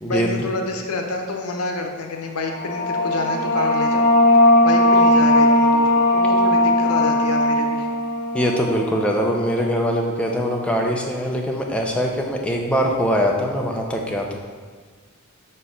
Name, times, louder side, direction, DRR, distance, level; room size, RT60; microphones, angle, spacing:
voice 1, 0.1-4.0 4.6-7.9, left 2 dB, 85° left, 3 dB, 0.7 m, -28 dB
sound 1, 2.4-9.7, left 1 dB, 45° left, 0.6 m, -18 dB
voice 2, 8.3-14.3, equal, 5° left, 0 dB, 0.6 m, -22 dB
4.5 x 4.3 x 5.0 m, 1.5 s
head